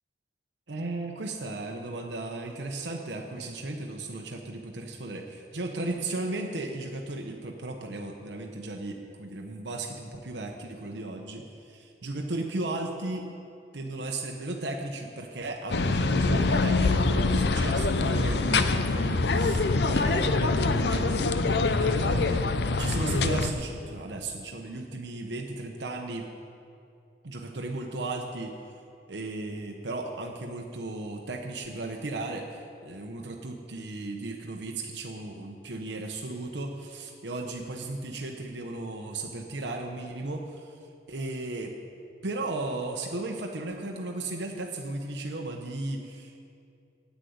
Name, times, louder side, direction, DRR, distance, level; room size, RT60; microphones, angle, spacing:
voice 1, 0.7-13.3 13.7-22.5 22.8-26.3 27.2-28.6 29.1-40.8 41.1-41.7 42.2-46.4, right 2 dB, 75° right, 2 dB, 0.9 m, -35 dB
sound 1, 15.7-23.5, left 3 dB, 65° left, 0.6 m, -24 dB
10.0 x 8.3 x 9.4 m, 2.5 s
head